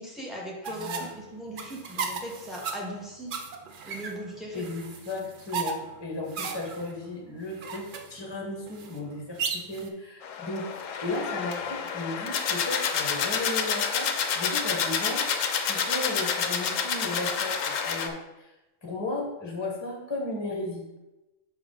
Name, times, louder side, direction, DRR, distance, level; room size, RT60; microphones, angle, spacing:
voice 1, 0.0-3.3 3.8-4.6 11.1-11.2, equal, ahead, -3 dB, 1.5 m, -39 dB
sound 1, 0.6-9.9, right 5 dB, 55° right, 0.6 m, -36 dB
voice 2, 0.7-1.1 4.5-10.7 11.0-14.1 14.3-15.2 15.6-18.5 18.8-21.0, left 2 dB, 20° left, -1 dB, 1.2 m, -35 dB
sound 2, 10.2-18.1, left 6 dB, 80° left, 1.0 m, -29 dB
6.1 x 4.7 x 3.8 m, 1.0 s
omnidirectional pair, 1.4 m